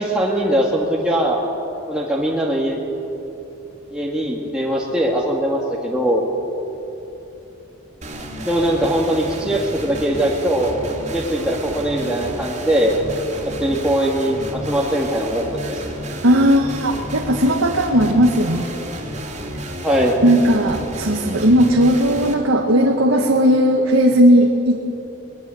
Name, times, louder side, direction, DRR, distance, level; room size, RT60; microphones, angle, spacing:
voice 1, 0.0-1.4 1.9-2.8 3.9-6.3 8.4-10.7 11.1-12.9 13.6-15.8 19.8-20.2, right 1 dB, 5° right, -4 dB, 2.0 m, -21 dB
sound 1, 8.0-22.3, right 1 dB, 35° right, 3.1 m, -31 dB
voice 2, 16.2-18.7 20.2-24.8, equal, 80° right, 2 dB, 1.7 m, -16 dB
22.0 x 20.5 x 7.8 m, 2.9 s
head